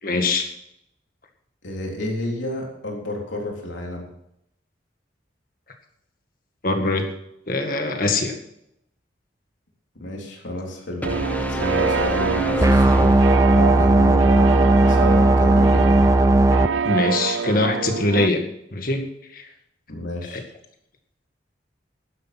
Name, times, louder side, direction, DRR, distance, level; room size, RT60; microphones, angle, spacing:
voice 1, 0.0-0.5 6.6-7.0 7.5-8.3 16.9-18.4 18.7-19.0 19.3-19.5 20.3-20.4, left 2 dB, 50° left, 4 dB, 1.9 m, -22 dB
voice 2, 1.6-4.1 10.0-11.2 11.5-13.2 13.5-16.1 19.9-20.4, left 1 dB, 85° left, -1 dB, 3.6 m, -31 dB
sound 1, 11.0-13.9, left 1 dB, 10° left, 0.8 m, -28 dB
sound 2, 11.0-18.3, right 6 dB, 85° right, 0.4 m, -26 dB
sound 3, 12.6-16.7, right 2 dB, 15° right, 0.5 m, -16 dB
11.5 x 10.5 x 5.9 m, 0.79 s
head